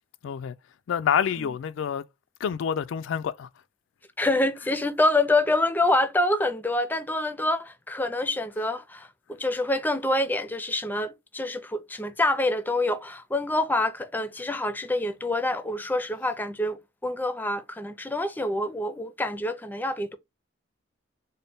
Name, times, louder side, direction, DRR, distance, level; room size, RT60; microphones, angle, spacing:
voice 1, 0.2-0.5 0.9-2.0 2.4-3.5, left 8 dB, 85° left, 0.3 m, -27 dB
voice 2, 4.2-20.2, left 2 dB, 10° left, 0.4 m, -26 dB
4.0 x 2.1 x 3.4 m
head